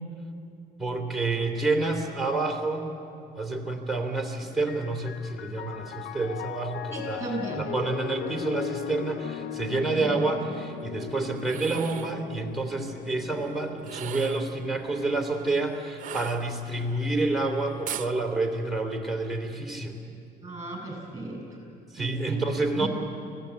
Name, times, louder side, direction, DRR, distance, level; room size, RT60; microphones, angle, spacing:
voice 1, 0.8-2.9 3.4-7.2 7.6-20.0 21.9-22.9, right 2 dB, ahead, 2 dB, 3.2 m, -28 dB
Piano, 4.5-14.1, left 11 dB, 80° left, 0.6 m, -38 dB
voice 2, 6.9-7.7 10.0-10.3 20.4-21.4 22.0-22.4 22.8-22.9, right 2 dB, 20° right, -1 dB, 7.1 m, -35 dB
sound 1, 11.4-12.2 13.8-14.5 16.0-16.9 17.9-18.1, right 11 dB, 50° right, 0.7 m, -38 dB
24.5 x 17.5 x 8.3 m, 2.5 s
cardioid pair, 110°, 17 cm